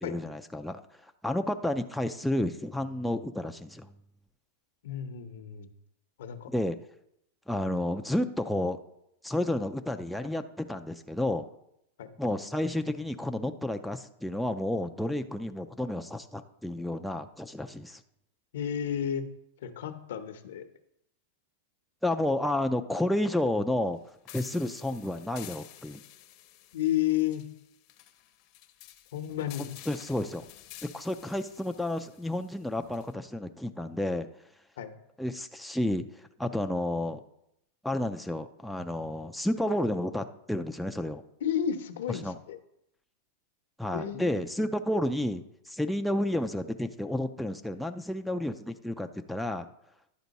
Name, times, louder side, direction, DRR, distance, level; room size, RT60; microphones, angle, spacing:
voice 1, 0.0-0.8 1.2-3.9 6.5-6.8 7.5-8.8 9.2-11.5 12.2-18.0 22.0-24.0 24.3-26.0 29.6-30.4 30.9-34.3 35.2-37.2 37.8-41.2 42.1-42.4 43.8-49.7, left 1 dB, ahead, 5 dB, 0.3 m, -31 dB
voice 2, 4.8-5.7 6.2-6.5 12.0-12.1 18.5-19.2 19.6-20.7 26.7-27.4 29.1-29.7 34.8-34.9 41.4-42.6 43.9-44.4, left 10 dB, 75° left, 8 dB, 0.8 m, -31 dB
sound 1, 24.3-33.1, left 13 dB, 45° left, 0.7 m, -51 dB
10.5 x 4.4 x 4.1 m, 0.79 s
supercardioid pair, 145°, 0 cm